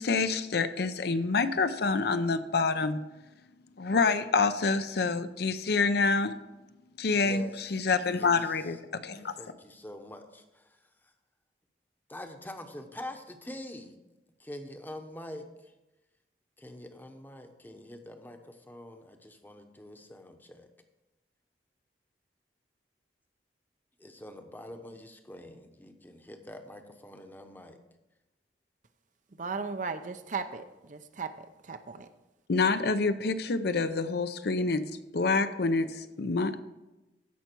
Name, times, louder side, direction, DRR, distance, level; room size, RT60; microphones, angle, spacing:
voice 1, 0.0-3.0 3.8-6.3 7.0-9.3 32.5-34.8 35.1-36.6, left 4 dB, 60° left, 10 dB, 0.6 m, -27 dB
voice 2, 7.0-7.9 8.1-8.8 9.4-11.1 12.1-13.9 14.4-15.7 16.6-20.7 24.0-27.8, left 1 dB, 10° left, 6 dB, 0.9 m, -45 dB
voice 3, 29.4-30.6 30.9-31.3 31.7-32.1, right 4 dB, 45° right, 9 dB, 0.6 m, -35 dB
15.5 x 5.8 x 4.5 m, 1.0 s
head